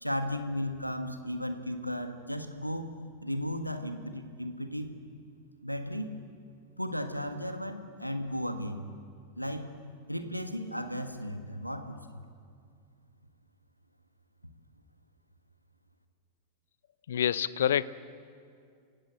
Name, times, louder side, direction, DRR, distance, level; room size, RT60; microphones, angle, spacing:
voice 1, 0.0-2.9 3.2-5.0 5.6-6.1 6.8-8.8 9.4-9.7 10.1-12.0, equal, 90° left, 7 dB, 1.6 m, -35 dB
voice 2, 17.1-17.8, left 10 dB, 60° left, 18 dB, 0.7 m, -26 dB
28.0 x 16.5 x 8.0 m, 2.3 s
figure-of-eight pair, 90°, 0 cm